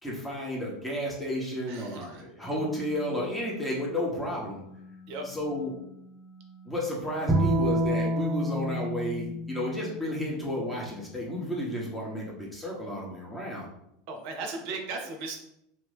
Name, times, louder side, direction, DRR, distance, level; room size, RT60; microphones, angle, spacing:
voice 1, 0.0-4.6 5.2-5.7 6.7-13.7, equal, 5° left, -4 dB, 1.3 m, -32 dB
voice 2, 1.7-2.2 5.1-5.2 14.1-15.4, right 3 dB, 60° right, 3 dB, 0.7 m, -36 dB
sound 1, 2.4-7.9, right 3 dB, 35° left, 0.4 m, -49 dB
Bowed string instrument, 7.3-10.6, right 1 dB, 20° right, 0.9 m, -28 dB
2.8 x 2.6 x 3.4 m, 0.78 s
hypercardioid pair, 85°, 0 cm